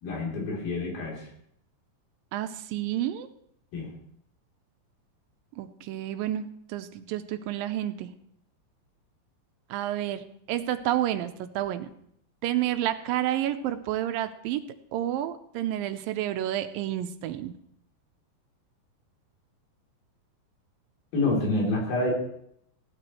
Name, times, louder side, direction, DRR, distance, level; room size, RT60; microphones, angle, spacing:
voice 1, 0.0-1.3 3.7-3.9 21.1-22.1, left 2 dB, 85° left, -2 dB, 5.2 m, -27 dB
voice 2, 2.3-3.3 5.6-8.1 9.7-11.9 12.4-14.6 14.9-17.5, right 12 dB, 85° right, 9 dB, 2.3 m, -30 dB
16.0 x 12.0 x 3.1 m, 0.70 s
omnidirectional pair, 4.1 m